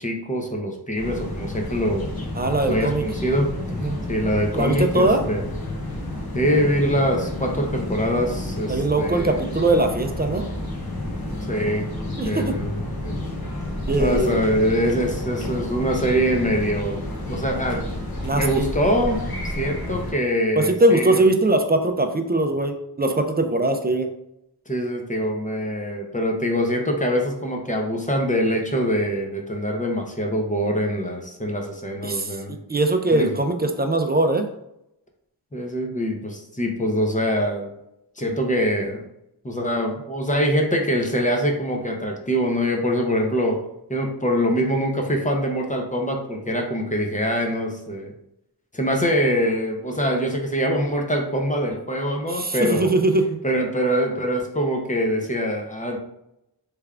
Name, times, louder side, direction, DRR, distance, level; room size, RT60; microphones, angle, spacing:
voice 1, 0.0-2.1 2.7-3.5 4.1-5.4 6.3-9.4 11.5-11.9 12.2-12.7 13.0-13.1 14.0-17.0 17.3-17.8 18.4-19.2 19.6-21.2 24.7-32.6 33.1-33.3 35.5-37.7 38.2-39.0 39.4-43.6 43.9-48.1 48.7-53.0 53.4-56.0, equal, 20° left, 1 dB, 0.6 m, -24 dB
sound 1, 0.9-20.1, left 1 dB, 60° left, 0.9 m, -30 dB
voice 2, 2.3-3.0 3.8-4.0 4.5-5.2 8.7-10.5 12.2-12.6 13.9-14.4 18.2-18.7 20.6-24.1 32.0-34.5 52.3-53.4, right 2 dB, 25° right, 6 dB, 0.3 m, -21 dB
3.4 x 3.2 x 2.4 m, 0.82 s
wide cardioid pair, 60°, 41 cm